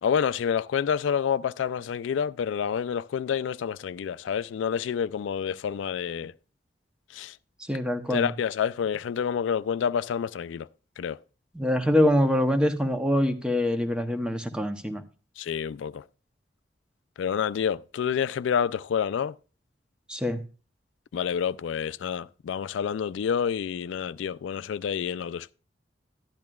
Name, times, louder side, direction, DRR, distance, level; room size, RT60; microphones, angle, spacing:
voice 1, 0.0-6.3 7.1-7.4 8.1-10.7 11.0-11.2 15.4-16.0 17.2-19.3 21.1-25.5, left 7 dB, 85° left, 0.3 m, -28 dB
voice 2, 7.7-8.3 11.5-15.0 20.1-20.4, left 1 dB, 5° right, 0.8 m, -24 dB
12.0 x 10.5 x 2.3 m
head